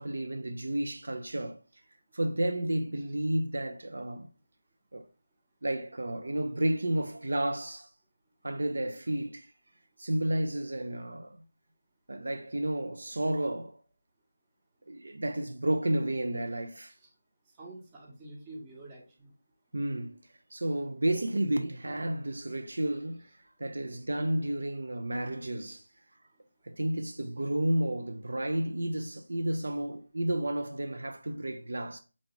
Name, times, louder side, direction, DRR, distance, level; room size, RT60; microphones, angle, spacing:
voice 1, 0.0-1.6 2.1-4.3 4.9-5.0 5.6-7.9 8.4-9.5 10.0-11.4 12.1-13.8 14.9-16.9 19.7-20.2 20.5-23.3 23.6-25.8 26.6-32.0, right 1 dB, 70° right, 0.4 m, -31 dB
voice 2, 17.6-19.3 25.7-25.8, right 1 dB, 15° right, 0.8 m, -47 dB
3.8 x 2.4 x 3.0 m
figure-of-eight pair, 165°, 0 cm